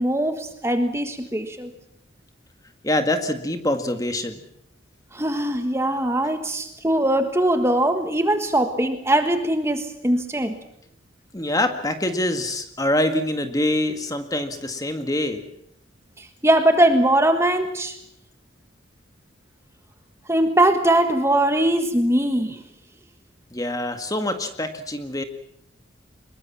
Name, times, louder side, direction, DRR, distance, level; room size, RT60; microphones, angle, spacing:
voice 1, 0.0-1.7 5.1-10.6 16.2-18.0 20.3-22.6, right 1 dB, 15° right, 7 dB, 1.5 m, -21 dB
voice 2, 2.8-4.4 11.3-15.4 23.5-25.2, left 1 dB, 20° left, 7 dB, 1.9 m, -25 dB
24.0 x 22.0 x 7.4 m, 0.73 s
head